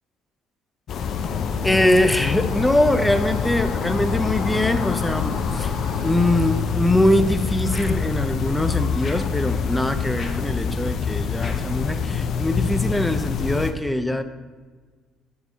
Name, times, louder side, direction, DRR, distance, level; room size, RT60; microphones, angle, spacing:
sound 1, 0.9-13.7, left 6 dB, 65° left, 0.5 m, -25 dB
voice 1, 1.6-5.7 6.0-14.2, left 1 dB, 10° left, 9 dB, 0.5 m, -22 dB
sound 2, 1.6-6.6, right 2 dB, 90° right, 0.9 m, -41 dB
sound 3, 7.7-8.1 9.0-9.4 10.1-10.5 11.4-11.8, left 3 dB, 45° left, 0.8 m, -39 dB
8.6 x 3.4 x 4.1 m, 1.5 s
supercardioid pair, 80°, 0 cm